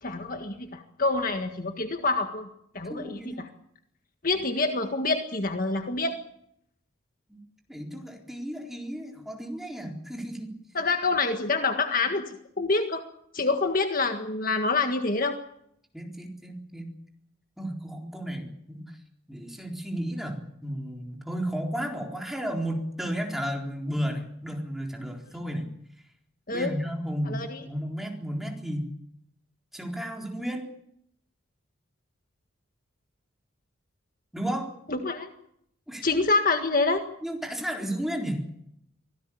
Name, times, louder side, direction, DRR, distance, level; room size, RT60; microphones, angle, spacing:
voice 1, 0.0-2.5 2.7-3.5 4.2-6.1 10.7-13.0 13.3-15.4 26.5-26.7 27.3-27.6 34.9-35.3 36.0-37.0, left 3 dB, 40° left, 6 dB, 1.7 m, -26 dB
voice 2, 2.8-3.4 7.3-7.4 7.7-10.5 15.9-16.9 17.6-19.0 19.3-25.7 26.5-28.9 29.7-30.7 34.3-34.7 35.9-36.1 37.2-38.4, equal, ahead, 1 dB, 4.1 m, -33 dB
25.0 x 17.5 x 8.7 m, 0.72 s
head